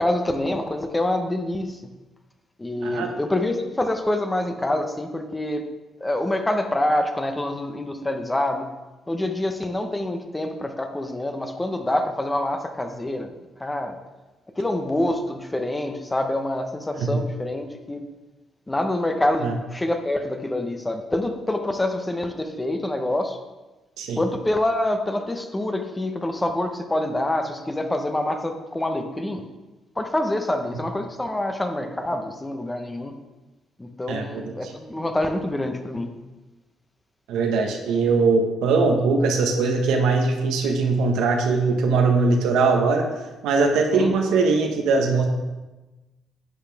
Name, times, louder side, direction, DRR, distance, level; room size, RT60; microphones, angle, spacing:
voice 1, 0.0-1.8 2.6-5.6 6.0-8.7 9.1-13.3 13.6-14.0 14.6-18.0 18.7-23.4 24.1-29.4 30.0-33.1 33.8-36.1 43.9-44.2, left 1 dB, 15° left, 6 dB, 1.1 m, -26 dB
voice 2, 34.1-34.5 37.3-43.1 43.4-45.2, right 4 dB, 90° right, 2 dB, 1.3 m, -21 dB
11.0 x 8.2 x 3.5 m, 1.1 s
cardioid pair, 90°, 0 cm